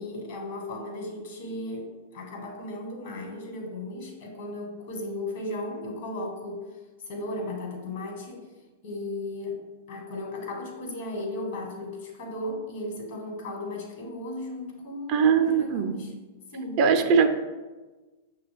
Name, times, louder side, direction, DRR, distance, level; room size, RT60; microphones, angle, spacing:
voice 1, 0.0-6.6 7.0-8.5 8.8-9.6 9.9-16.1 16.5-16.9, left 1 dB, 60° left, 1 dB, 1.1 m, -36 dB
voice 2, 15.1-16.0 16.8-17.3, right 6 dB, 45° right, 8 dB, 0.4 m, -21 dB
6.2 x 2.2 x 3.3 m, 1.2 s
hypercardioid pair, 105°, 0 cm